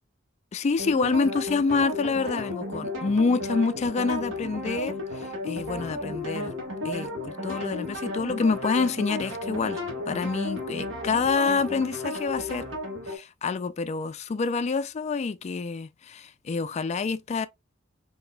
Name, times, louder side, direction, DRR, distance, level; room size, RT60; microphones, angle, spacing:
voice 1, 0.5-6.6 6.8-12.6 13.1-17.5, left 4 dB, 35° left, 0.3 m, -27 dB
sound 1, 0.8-13.2, left 2 dB, 70° right, 1.4 m, -33 dB
sound 2, 3.7-12.8, right 1 dB, ahead, 1.4 m, -53 dB
4.1 x 2.7 x 2.2 m
head